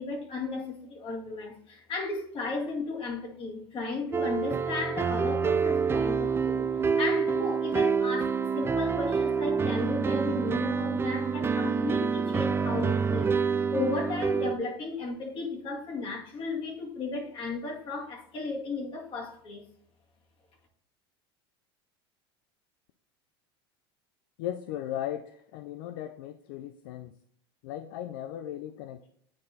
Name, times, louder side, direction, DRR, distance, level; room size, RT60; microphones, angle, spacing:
voice 1, 0.0-6.7 7.0-19.6, left 3 dB, 40° left, 2.1 m, -34 dB
sound 1, 4.1-14.6, right 5 dB, 20° right, 0.4 m, -27 dB
voice 2, 24.4-27.1 27.6-29.1, left 11 dB, 65° left, 0.4 m, -37 dB
9.5 x 4.6 x 2.8 m
hypercardioid pair, 85°, 13 cm